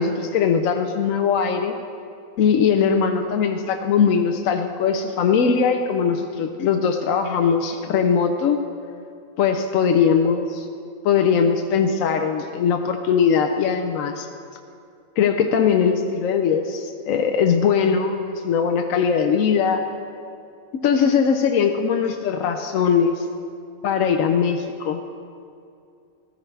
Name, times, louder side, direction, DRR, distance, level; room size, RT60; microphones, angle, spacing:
voice 1, 0.0-1.7 2.4-8.6 9.4-10.7 11.0-14.3 15.2-19.8 20.7-23.2 23.8-25.0, left 6 dB, 75° left, 5 dB, 1.1 m, -20 dB
15.0 x 13.5 x 3.3 m, 2.5 s
omnidirectional pair, 1.4 m